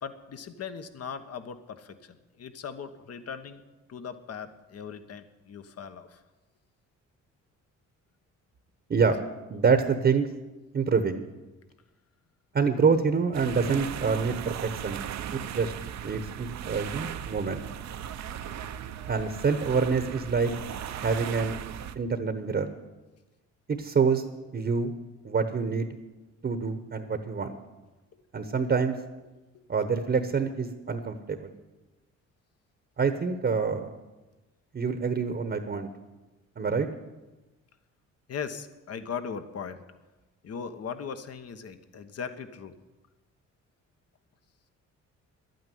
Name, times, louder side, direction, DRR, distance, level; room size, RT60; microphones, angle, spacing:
voice 1, 0.0-3.6 3.9-6.2 9.2-9.3 28.9-29.0 29.5-29.6 30.3-30.4 38.3-39.8 40.4-42.7, left 6 dB, 55° left, 10 dB, 1.3 m, -39 dB
voice 2, 9.5-10.3 10.7-11.2 12.5-15.0 15.3-15.7 16.0-17.6 19.1-20.5 20.9-21.6 21.9-22.7 23.7-24.2 24.5-24.9 25.2-25.9 26.4-27.6 28.3-29.0 29.7-31.5 33.0-34.0 34.7-35.9 36.6-36.9, right 5 dB, 35° right, 8 dB, 1.1 m, -26 dB
sound 1, 13.3-22.0, right 9 dB, 65° right, 0.9 m, -37 dB
11.5 x 9.3 x 9.3 m, 1.1 s
cardioid pair, 90°, 30 cm